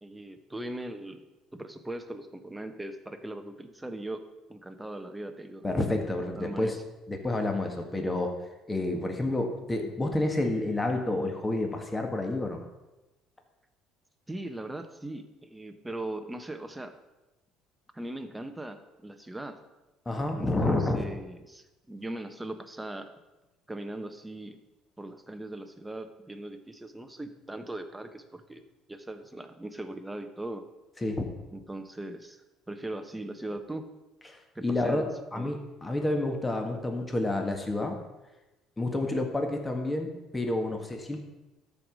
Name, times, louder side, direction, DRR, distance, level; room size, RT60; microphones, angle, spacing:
voice 1, 0.0-1.2 1.5-5.7 6.3-6.8 14.3-16.9 17.9-19.6 20.3-23.1 23.7-24.6 25.0-28.6 28.9-30.6 31.5-32.4 32.7-33.9 34.5-35.5, right 1 dB, 10° right, 8 dB, 1.0 m, -39 dB
voice 2, 5.6-6.8 7.1-8.3 8.7-12.6 20.0-21.0 31.0-31.3 34.3-35.0 35.3-38.0 38.8-41.2, left 2 dB, 15° left, 3 dB, 1.6 m, -29 dB
13.0 x 4.9 x 5.2 m, 1.0 s
supercardioid pair, 100°, 0 cm